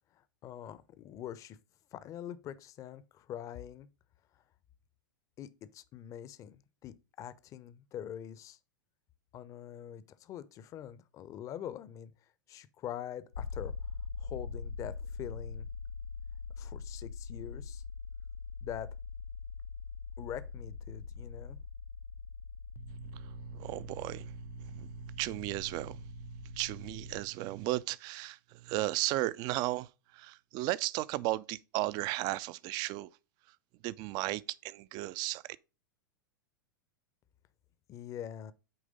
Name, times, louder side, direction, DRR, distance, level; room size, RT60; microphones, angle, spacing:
voice 1, 0.1-1.6 1.9-3.9 5.4-8.6 9.3-12.1 12.5-13.7 14.2-15.7 16.6-17.8 18.6-18.9 20.2-21.6 37.9-38.5, left 10 dB, 30° left, 0.6 m, -44 dB
sound 1, 13.3-27.2, left 5 dB, 85° left, 1.1 m, -43 dB
voice 2, 22.8-33.1 33.8-35.4, right 17 dB, 35° right, 0.4 m, -35 dB
8.7 x 3.3 x 5.1 m
figure-of-eight pair, 95°, 11 cm